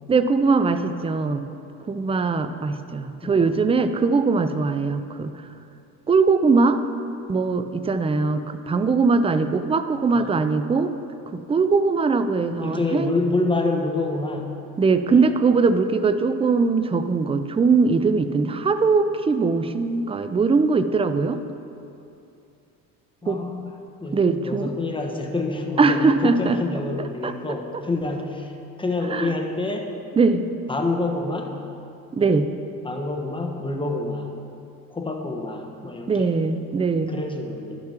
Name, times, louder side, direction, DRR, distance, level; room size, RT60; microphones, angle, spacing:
voice 1, 0.1-1.4 1.9-5.3 6.1-6.8 7.3-10.9 11.3-13.1 14.8-21.4 23.3-23.4 24.1-24.7 25.8-26.6 27.2-27.3 29.1-29.3 30.2-30.5 32.1-32.5 36.1-37.2, right 4 dB, 15° right, 10 dB, 0.4 m, -21 dB
voice 2, 3.2-3.7 10.1-10.4 12.6-14.5 15.1-15.3 23.2-23.7 24.0-28.5 28.8-29.9 30.7-31.5 32.2-32.4 32.8-34.3 34.9-36.3 37.1-37.8, left 2 dB, 15° left, 2 dB, 1.0 m, -27 dB
11.5 x 5.9 x 4.4 m, 2.6 s
supercardioid pair, 90°, 35 cm